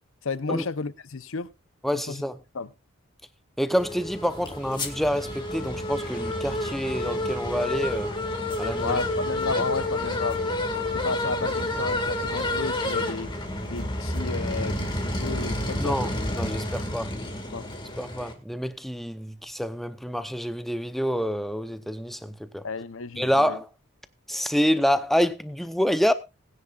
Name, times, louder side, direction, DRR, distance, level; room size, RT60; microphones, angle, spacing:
voice 1, 0.2-1.5 1.9-2.2 2.5-2.7 8.8-10.5 10.9-13.3 13.6-16.1 17.5-17.7 22.6-23.6, left 4 dB, 70° left, 0.7 m, -32 dB
voice 2, 1.8-2.4 3.6-8.1 8.6-9.0 15.8-17.1 18.0-22.6 23.2-23.7 24.3-26.1, equal, ahead, 0.7 m, -27 dB
sound 1, 3.8-18.3, left 1 dB, 20° left, 1.9 m, -29 dB
20.0 x 9.7 x 2.4 m
head